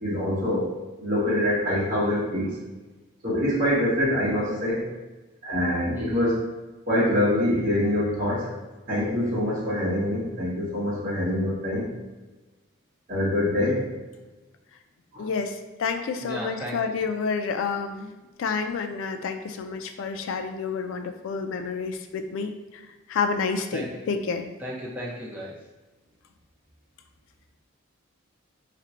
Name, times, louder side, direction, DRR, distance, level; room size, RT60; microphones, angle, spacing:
voice 1, 0.0-0.7 1.0-2.6 3.2-4.9 5.4-6.4 6.9-8.5 8.9-11.9 13.1-13.9 15.1-15.3, left 1 dB, 40° right, -7 dB, 0.9 m, -25 dB
voice 2, 5.9-6.4 16.2-17.0 23.7-24.1 24.6-25.7, equal, 10° right, -5 dB, 0.6 m, -35 dB
voice 3, 15.2-18.1 18.4-24.5, left 5 dB, 70° left, 6 dB, 0.3 m, -29 dB
2.5 x 2.1 x 4.0 m, 1.2 s
head